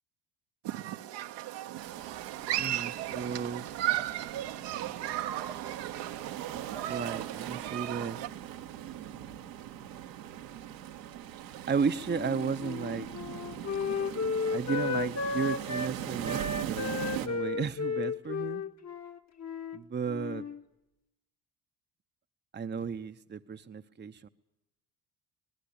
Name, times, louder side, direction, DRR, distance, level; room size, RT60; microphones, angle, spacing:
Human group actions, 0.6-8.3, right 13 dB, 60° right, 1.2 m, -35 dB
sound 1, 1.8-17.3, right 11 dB, 85° right, 1.9 m, -41 dB
voice 1, 2.6-3.7 6.5-8.2 11.7-13.1 14.5-16.9 17.2-18.6 19.7-20.4 22.5-24.3, right 6 dB, 20° right, 1.0 m, -34 dB
Wind instrument woodwind instrument, 12.1-15.9 16.2-19.8 20.1-20.6, left 4 dB, 35° left, 1.5 m, -34 dB
26.0 x 19.5 x 8.8 m
hypercardioid pair, 65°, 49 cm